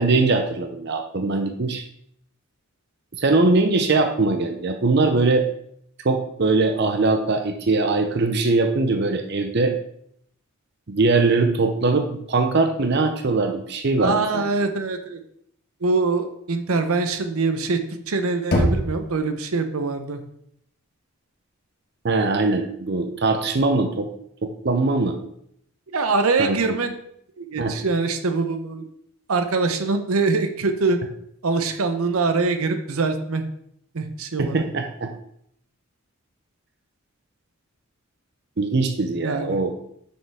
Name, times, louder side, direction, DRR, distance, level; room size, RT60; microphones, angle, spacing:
voice 1, 0.0-1.8 3.1-5.4 6.0-9.7 10.9-14.5 22.0-24.1 24.4-25.2 26.4-26.8 27.6-27.7 34.4-35.1 38.6-39.7, right 3 dB, 50° right, 5 dB, 0.6 m, -21 dB
voice 2, 14.0-15.2 15.8-17.8 18.1-20.2 25.9-26.9 27.4-28.9 29.3-31.0 31.4-33.4 33.9-34.7 39.2-39.6, right 3 dB, 80° right, 8 dB, 0.8 m, -23 dB
Knock, 18.5-19.4, left 1 dB, 50° left, 1.6 m, -23 dB
7.0 x 6.3 x 3.5 m, 0.71 s
head